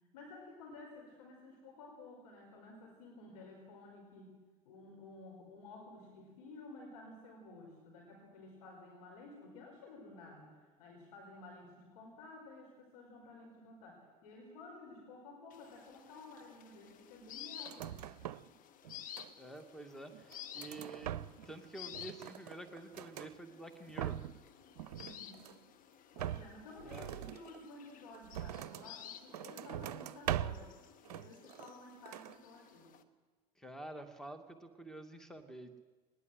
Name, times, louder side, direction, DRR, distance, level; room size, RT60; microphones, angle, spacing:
voice 1, 0.1-4.3 4.7-10.5 10.8-18.2 24.9-25.5 26.1-30.8 31.0-32.9, left 2 dB, 65° left, 0 dB, 5.2 m, -53 dB
sound 1, 15.5-33.0, left 10 dB, 40° left, 1.6 m, -54 dB
sound 2, 17.6-18.6 18.8-19.6 20.1-21.6 21.9-23.3 23.7-24.5 24.8-25.7 26.2-28.9 29.3-30.7 31.1-31.8 32.1-32.4, right 11 dB, 65° right, 0.6 m, -42 dB
voice 2, 19.3-21.1 21.5-24.2 26.9-27.1 33.6-35.8, right 2 dB, ahead, 7 dB, 2.3 m, -49 dB
20.5 x 20.0 x 7.8 m, 1.3 s
figure-of-eight pair, 70°, 21 cm